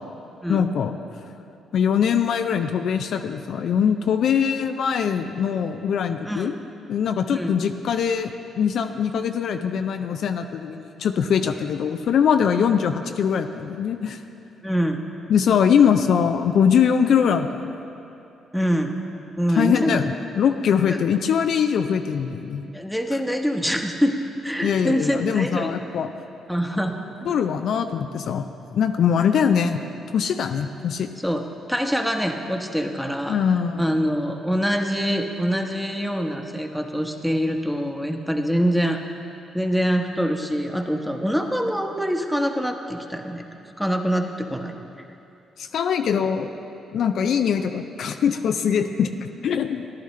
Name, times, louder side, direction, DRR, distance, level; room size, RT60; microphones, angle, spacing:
voice 1, 0.5-1.0 1.7-6.5 6.9-14.2 15.3-17.8 19.5-22.7 24.6-26.1 27.3-29.8 30.1-31.1 33.3-33.8 45.6-46.5 46.9-49.9, left 7 dB, 65° left, 7 dB, 0.4 m, -22 dB
voice 2, 6.2-6.6 7.3-7.5 14.6-15.0 18.5-19.0 19.4-20.0 20.9-21.0 22.7-24.2 24.4-25.8 26.5-26.9 31.2-33.4 33.8-39.0 39.5-43.4 43.8-44.8, equal, ahead, 3 dB, 1.1 m, -24 dB
14.5 x 11.0 x 3.2 m, 2.8 s
hypercardioid pair, 45°, 0 cm